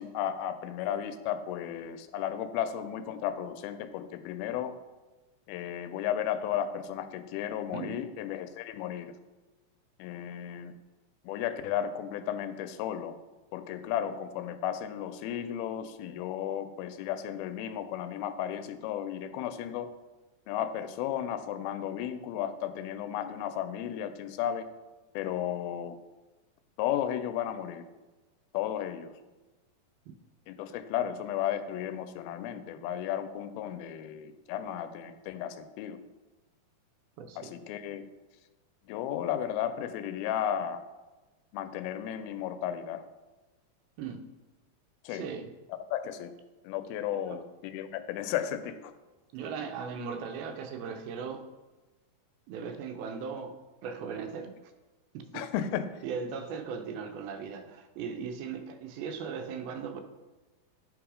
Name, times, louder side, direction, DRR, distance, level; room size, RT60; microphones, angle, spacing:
voice 1, 0.0-4.7 5.5-9.1 10.0-10.7 11.2-13.2 13.5-19.9 20.5-24.7 25.1-26.0 26.8-27.8 28.5-29.1 30.5-36.0 37.4-38.1 38.9-40.8 41.5-43.0 45.0-45.3 45.7-46.3 46.6-48.9 55.3-56.0, left 10 dB, 90° left, 10 dB, 2.4 m, -34 dB
voice 2, 7.7-8.0 30.1-30.2 37.2-37.5 44.0-44.3 45.1-45.5 47.3-47.4 49.3-51.5 52.5-53.5 53.8-54.6 55.1-55.5 55.7-60.0, right 6 dB, 90° right, 7 dB, 2.6 m, -38 dB
9.5 x 3.3 x 4.9 m, 1.2 s
omnidirectional pair, 4.2 m